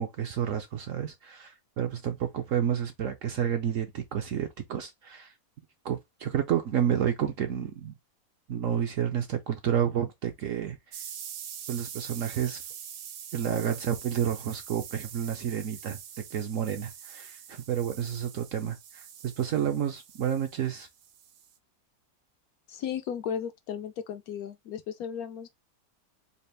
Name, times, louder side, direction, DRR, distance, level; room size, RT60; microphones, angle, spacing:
voice 1, 0.0-5.3 5.8-8.0 8.5-11.0 11.7-12.6 13.3-16.0 16.3-20.9, right 9 dB, 65° right, 0.8 m, -30 dB
sound 1, 10.9-21.5, right 9 dB, 90° right, 1.3 m, -44 dB
voice 2, 22.7-25.5, left 8 dB, 70° left, 0.9 m, -35 dB
4.2 x 2.4 x 3.2 m
omnidirectional pair, 1.8 m